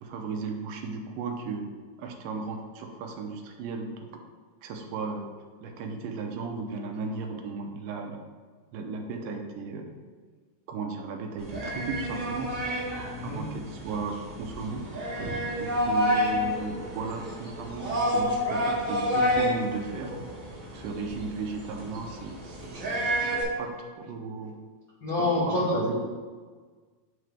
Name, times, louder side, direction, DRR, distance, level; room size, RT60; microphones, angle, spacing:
voice 1, 0.0-1.6 2.0-4.0 4.6-5.3 5.6-8.2 8.7-10.0 10.7-12.6 13.2-14.8 15.6-20.2 20.7-22.9 23.6-24.6 25.4-26.1, right 4 dB, 75° right, 2 dB, 2.1 m, -35 dB
sound 1, 11.4-23.4, equal, 35° right, 1.3 m, -29 dB
voice 2, 13.1-13.4 25.0-25.8, left 2 dB, 70° left, -9 dB, 1.1 m, -27 dB
11.0 x 3.7 x 3.4 m, 1.5 s
omnidirectional pair, 4.7 m